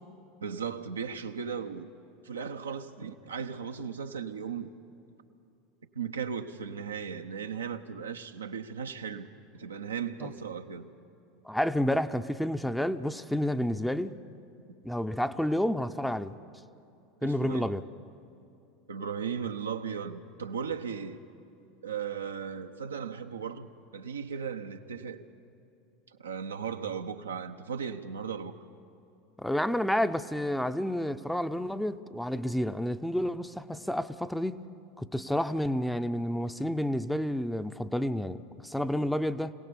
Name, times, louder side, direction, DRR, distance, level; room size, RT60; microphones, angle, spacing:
voice 1, 0.4-1.9 2.2-4.7 5.9-10.9 17.2-17.7 18.9-21.2 21.8-25.2 26.2-28.5, right 6 dB, 85° right, 5 dB, 0.8 m, -36 dB
voice 2, 11.5-14.2 14.8-16.4 17.2-17.8 29.4-34.6 35.0-39.5, left 1 dB, 5° left, 11 dB, 0.7 m, -30 dB
25.5 x 17.0 x 7.0 m, 2.7 s
hypercardioid pair, 80°, 0 cm